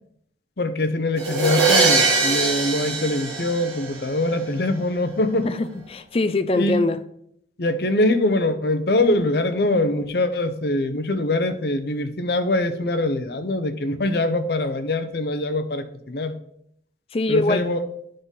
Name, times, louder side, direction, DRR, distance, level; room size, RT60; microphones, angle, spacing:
voice 1, 0.6-5.5 6.5-6.8 7.6-16.3 17.3-17.8, left 2 dB, 60° left, 9 dB, 0.7 m, -23 dB
sound 1, 1.2-4.1, right 3 dB, 65° right, 2.3 m, -21 dB
voice 2, 5.4-7.0 17.1-17.6, left 2 dB, 30° left, 10 dB, 0.4 m, -23 dB
11.0 x 3.8 x 4.0 m, 0.72 s
head